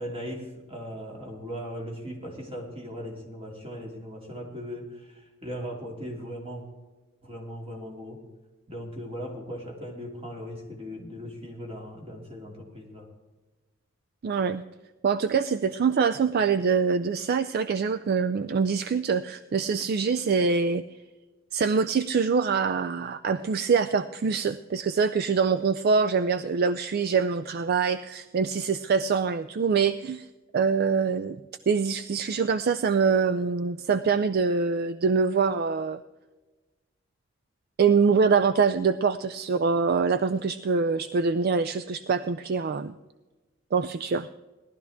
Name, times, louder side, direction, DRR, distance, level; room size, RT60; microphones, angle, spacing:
voice 1, 0.0-6.6 7.2-8.2 8.7-13.1, equal, 30° right, 0 dB, 2.7 m, -38 dB
voice 2, 14.2-14.6 15.0-20.8 21.5-30.3 30.5-31.4 31.7-36.0 37.8-42.9 43.7-44.3, right 5 dB, 50° right, 13 dB, 0.4 m, -24 dB
18.0 x 12.0 x 3.6 m, 1.2 s
head